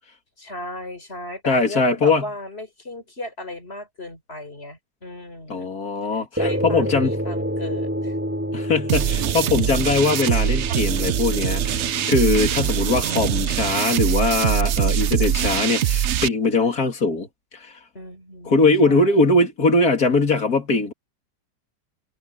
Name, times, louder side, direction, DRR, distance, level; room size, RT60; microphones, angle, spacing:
voice 1, 0.4-5.7 6.1-8.2 17.9-19.3, left 1 dB, 35° left, 4.8 m, -36 dB
voice 2, 1.5-2.3 5.5-7.1 8.5-17.3 17.5-17.7 18.4-20.9, left 3 dB, 55° left, 3.4 m, -21 dB
sound 1, 6.4-15.1, equal, 5° right, 7.4 m, -30 dB
sound 2, 8.9-16.3, right 10 dB, 70° right, 0.6 m, -23 dB
omnidirectional pair, 1.9 m